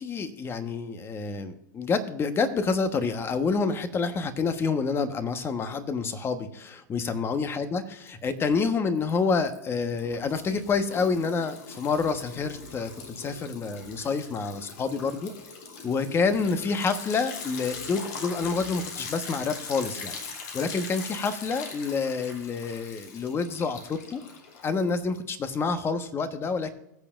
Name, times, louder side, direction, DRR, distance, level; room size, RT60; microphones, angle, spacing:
voice 1, 0.0-15.3 15.8-24.2 24.6-26.7, left 4 dB, 25° left, 9 dB, 1.2 m, -28 dB
Liquid, 8.1-8.7 9.0-25.2, left 5 dB, 60° left, 2.9 m, -41 dB
21.0 x 6.9 x 2.5 m, 0.82 s
hypercardioid pair, 110°, 10 cm